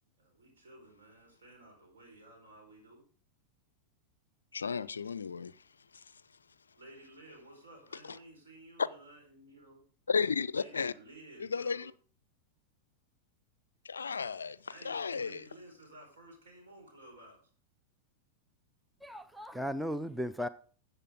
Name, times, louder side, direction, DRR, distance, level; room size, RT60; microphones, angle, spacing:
voice 1, 0.2-3.0 6.8-9.8 10.5-11.9 14.7-17.4, right 2 dB, 65° right, 4.4 m, -54 dB
voice 2, 4.5-5.6 5.9-6.0 8.0-8.2 10.1-10.9 11.4-11.9 13.8-15.4, left 5 dB, 75° left, 0.4 m, -34 dB
voice 3, 19.0-20.5, equal, ahead, 0.4 m, -36 dB
13.0 x 7.9 x 3.6 m
figure-of-eight pair, 90°, 0 cm